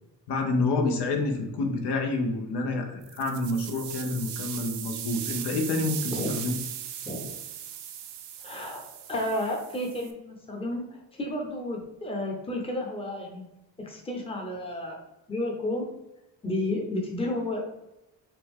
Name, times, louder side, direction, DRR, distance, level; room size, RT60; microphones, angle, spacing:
voice 1, 0.3-6.6, left 2 dB, 65° left, 3 dB, 0.9 m, -28 dB
sound 1, 3.0-10.1, right 10 dB, 70° right, 0.7 m, -38 dB
voice 2, 7.1-7.4 8.4-13.4 13.8-15.0 15.3-15.9 16.4-17.6, left 1 dB, 15° left, 1 dB, 0.8 m, -32 dB
5.8 x 2.4 x 3.6 m, 0.91 s
cardioid pair, 135°, 43 cm